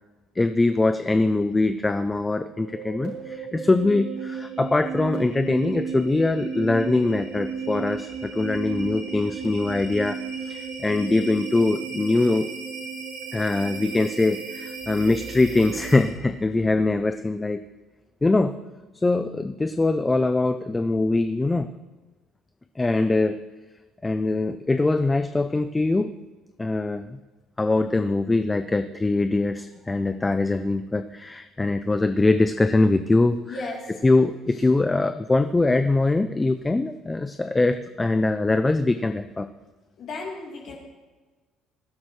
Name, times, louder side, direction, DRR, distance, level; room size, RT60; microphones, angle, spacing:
voice 1, 0.4-12.5 13.3-17.6 18.2-18.6 18.9-21.7 22.8-23.4 24.0-26.1 26.6-27.2 27.6-33.6 34.0-39.5, left 2 dB, 10° left, 9 dB, 0.4 m, -22 dB
sound 1, 2.4-16.3, right 5 dB, 85° right, 4.9 m, -34 dB
voice 2, 33.5-33.9 40.0-40.8, left 3 dB, 45° left, -3 dB, 3.1 m, -34 dB
22.0 x 12.0 x 3.2 m, 1.3 s
cardioid pair, 175°, 0 cm